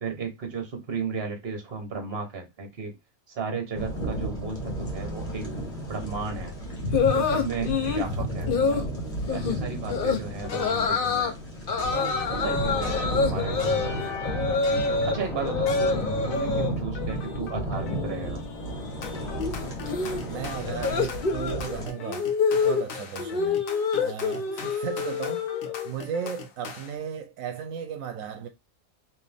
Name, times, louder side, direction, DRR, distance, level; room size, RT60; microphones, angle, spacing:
voice 1, 0.0-3.0 3.3-5.5 5.9-6.5 7.1-8.9 9.3-11.4 11.9-14.2 14.7-18.4, right 5 dB, 50° right, 1.4 m, -34 dB
sound 1, 3.7-21.9, equal, 30° left, 1.5 m, -33 dB
sound 2, 6.9-8.1 8.5-8.8 9.3-9.6 9.9-10.2 10.5-11.3 11.7-15.1 15.4-16.7 17.0-17.5 17.7-25.9, left 5 dB, 50° left, 0.8 m, -27 dB
sound 3, 10.4-11.2 11.8-16.6 16.9-18.2 19.0-27.0, left 6 dB, 80° left, 1.3 m, -40 dB
voice 2, 20.2-23.6 24.0-28.5, right 7 dB, 80° right, 1.1 m, -36 dB
4.3 x 2.8 x 3.4 m
omnidirectional pair, 1.4 m